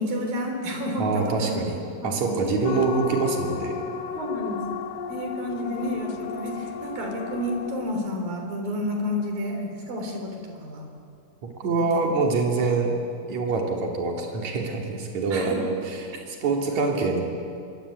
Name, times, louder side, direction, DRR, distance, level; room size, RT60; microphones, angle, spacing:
voice 1, 0.0-1.6 2.0-2.3 4.1-4.8 5.1-10.9 11.7-12.1 15.3-15.7, left 1 dB, 80° right, 3 dB, 5.5 m, -30 dB
voice 2, 1.0-3.8 11.6-12.9 13.3-17.2, right 4 dB, 55° right, 1 dB, 4.2 m, -25 dB
sound 1, 2.6-7.9, left 6 dB, 75° left, 2.9 m, -33 dB
25.5 x 23.0 x 8.6 m, 2.5 s
omnidirectional pair, 4.0 m